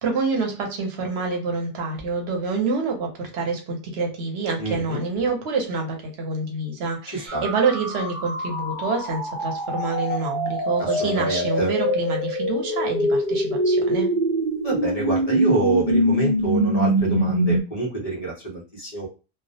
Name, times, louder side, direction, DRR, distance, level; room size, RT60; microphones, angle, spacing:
voice 1, 0.0-14.1, right 4 dB, 80° right, 2 dB, 0.9 m, -27 dB
voice 2, 4.6-5.0 7.1-7.4 10.8-11.7 14.6-19.1, right 3 dB, 40° left, -3 dB, 0.7 m, -27 dB
sound 1, 7.3-17.6, equal, 50° right, 0.7 m, -24 dB
2.3 x 2.0 x 2.6 m, 0.32 s
omnidirectional pair, 1.1 m